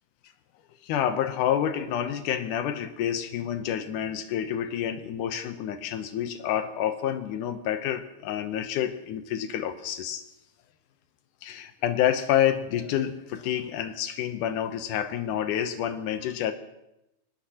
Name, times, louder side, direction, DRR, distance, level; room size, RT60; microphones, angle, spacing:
voice 1, 0.8-10.2 11.4-16.5, left 10 dB, 85° left, 8 dB, 2.3 m, -28 dB
25.0 x 19.0 x 2.9 m, 0.89 s
omnidirectional pair, 3.5 m